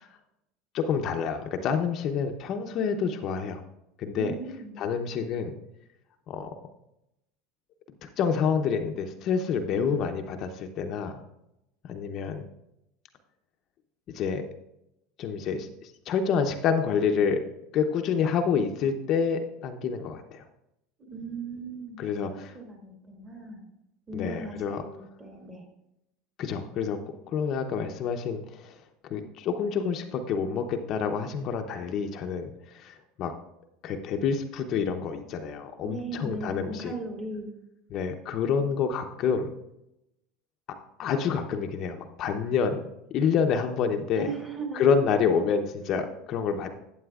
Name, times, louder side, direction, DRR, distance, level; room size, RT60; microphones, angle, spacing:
voice 1, 0.7-3.6 4.0-4.3 4.8-5.5 6.3-6.5 8.0-11.2 11.8-12.4 14.1-14.4 15.2-17.4 17.7-20.4 22.0-22.5 24.1-24.8 26.4-27.0 27.3-28.8 29.1-33.3 33.8-36.9 37.9-39.5 41.0-44.3 44.7-46.7, left 6 dB, 45° left, 5 dB, 0.7 m, -28 dB
voice 2, 4.2-4.8 21.1-22.0 22.3-23.7 24.1-25.7 35.8-37.5 44.1-44.8, right 3 dB, 20° right, 1 dB, 2.4 m, -38 dB
11.5 x 8.7 x 2.4 m, 0.86 s
supercardioid pair, 125°, 0 cm